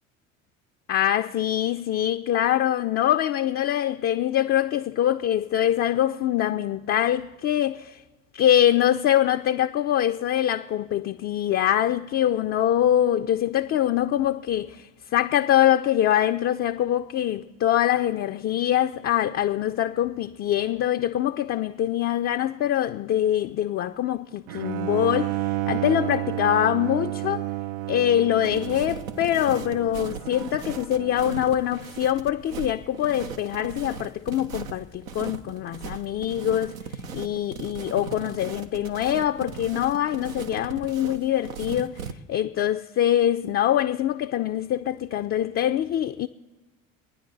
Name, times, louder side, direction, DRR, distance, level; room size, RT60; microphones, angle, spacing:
voice 1, 0.9-8.0 8.3-27.5 27.9-36.8 37.1-42.0 42.3-46.3, left 11 dB, 35° left, 0.5 m, -24 dB
Bowed string instrument, 24.5-31.5, right 16 dB, 65° right, 0.5 m, -31 dB
sound 1, 28.4-42.1, right 6 dB, 85° right, 0.9 m, -38 dB
24.5 x 9.6 x 4.0 m
hypercardioid pair, 65°, 41 cm